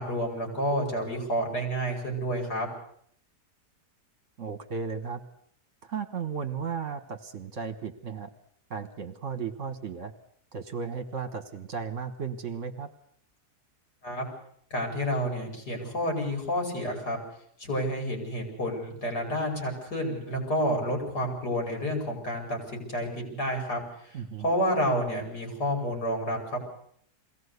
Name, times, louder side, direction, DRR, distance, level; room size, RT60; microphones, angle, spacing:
voice 1, 0.0-2.7 14.0-14.2 14.7-17.2 17.6-26.6, equal, 85° left, 2 dB, 5.8 m, -30 dB
voice 2, 4.4-5.2 5.8-8.3 8.7-10.1 10.5-12.9 24.1-24.4, right 6 dB, 50° right, 10 dB, 1.6 m, -35 dB
22.0 x 17.0 x 8.2 m, 0.65 s
omnidirectional pair, 1.7 m